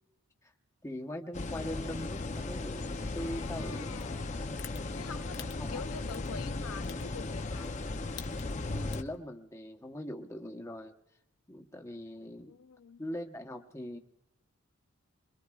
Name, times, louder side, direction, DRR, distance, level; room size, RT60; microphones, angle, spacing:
voice 1, 0.8-4.4 5.4-5.9 8.7-10.9 11.5-12.6 13.0-14.0, left 1 dB, 15° left, 0.9 m, -41 dB
sound 1, 1.3-9.0, left 2 dB, 30° left, 0.6 m, -37 dB
voice 2, 3.2-4.4 4.9-7.8 12.4-13.0, left 5 dB, 80° left, 0.6 m, -46 dB
sound 2, 4.0-4.1 4.6-4.8 5.3-5.5 6.1-6.3 6.8-7.0 7.6-7.8 8.1-8.5 8.9-9.2, left 11 dB, 55° left, 0.9 m, -44 dB
24.5 x 23.0 x 2.4 m
head